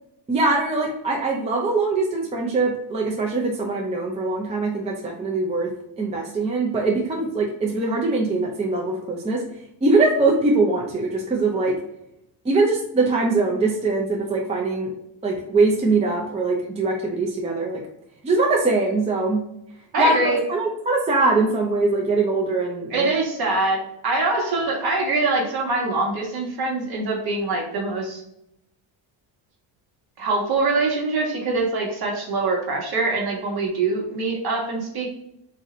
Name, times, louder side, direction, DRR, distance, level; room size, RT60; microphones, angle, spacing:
voice 1, 0.3-5.7 6.0-9.4 9.8-11.8 12.4-14.9 15.2-17.8 18.2-19.4 20.0-23.1, right 3 dB, 15° right, -1 dB, 0.5 m, -22 dB
voice 2, 19.9-20.4 22.9-28.2 30.2-35.1, right 3 dB, 50° right, -1 dB, 1.3 m, -24 dB
3.8 x 2.7 x 3.1 m, 0.80 s
cardioid pair, 135°, 48 cm